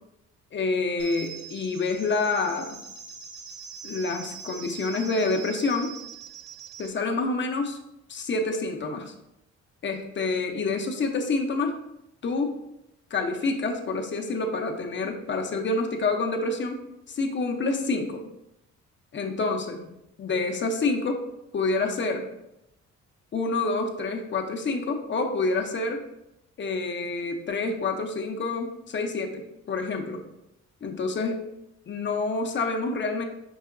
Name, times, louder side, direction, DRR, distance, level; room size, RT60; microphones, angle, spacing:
voice 1, 0.5-2.8 3.8-6.0 6.8-7.8 8.1-9.1 9.8-11.8 12.2-12.6 13.1-16.8 17.1-18.2 19.1-19.9 20.2-21.2 21.5-22.3 23.3-26.0 26.6-30.2 30.8-31.5 31.9-33.2, left 3 dB, 40° left, 3 dB, 0.6 m, -27 dB
sound 1, 1.0-6.9, right 7 dB, 35° right, 0.9 m, -42 dB
5.4 x 2.8 x 2.5 m, 0.85 s
cardioid pair, 90°, 30 cm